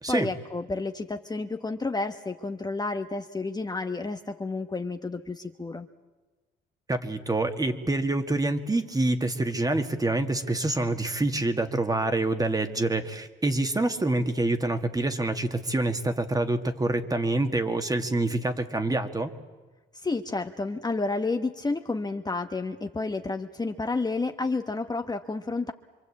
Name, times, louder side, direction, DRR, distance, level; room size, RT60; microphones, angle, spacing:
voice 1, 0.1-5.9 19.9-25.7, left 3 dB, 20° left, 6 dB, 1.1 m, -30 dB
voice 2, 6.9-19.3, right 2 dB, 20° right, 8 dB, 1.9 m, -26 dB
26.0 x 23.5 x 8.5 m, 1.2 s
cardioid pair, 90°, 20 cm